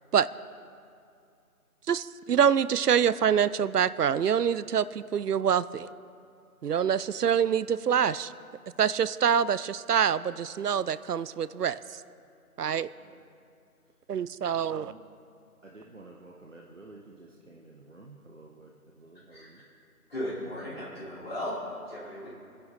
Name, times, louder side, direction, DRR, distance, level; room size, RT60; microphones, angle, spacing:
voice 1, 1.9-5.9 6.6-8.3 8.8-12.0 12.6-12.9 14.1-14.9, right 8 dB, 90° right, 17 dB, 0.6 m, -25 dB
voice 2, 14.5-15.1 15.6-19.7, right 2 dB, 55° right, -2 dB, 1.2 m, -51 dB
voice 3, 20.1-21.6 21.9-22.3, left 1 dB, 40° left, -9 dB, 4.6 m, -36 dB
26.5 x 10.5 x 4.1 m, 2.4 s
figure-of-eight pair, 180°, 45 cm